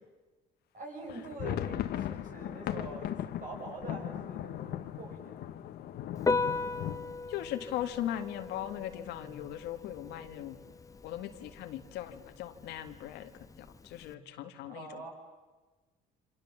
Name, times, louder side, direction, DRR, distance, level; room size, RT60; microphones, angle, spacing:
voice 1, 0.7-5.5 14.7-15.1, right 2 dB, 50° right, 1 dB, 8.0 m, -44 dB
sound 1, 1.0-8.8 9.1-9.2 9.5-9.7 10.2-10.7, left 11 dB, 70° left, 1.4 m, -38 dB
Piano, 6.2-14.1, left 3 dB, 20° left, 0.8 m, -38 dB
voice 2, 7.3-10.6 11.0-13.3 13.6-15.0, left 11 dB, 85° left, 7 dB, 1.9 m, -39 dB
28.0 x 26.5 x 7.5 m, 1.3 s
cardioid pair, 110°, 17 cm